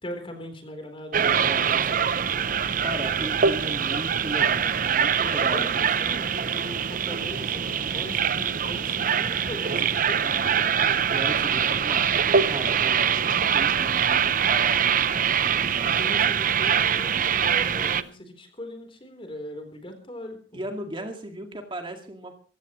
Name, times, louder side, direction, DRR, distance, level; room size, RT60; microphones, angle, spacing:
voice 1, 0.0-2.6 5.4-11.0 15.8-20.6, equal, 30° left, 6 dB, 3.8 m, -40 dB
voice 2, 1.1-2.0 2.8-5.7 11.0-16.3 20.5-22.3, right 1 dB, 30° right, 4 dB, 2.1 m, -37 dB
sound 1, 1.1-18.0, right 7 dB, 50° right, 0.6 m, -23 dB
sound 2, 3.0-18.1, right 3 dB, 85° right, 2.3 m, -52 dB
23.5 x 15.5 x 3.1 m, 0.39 s
head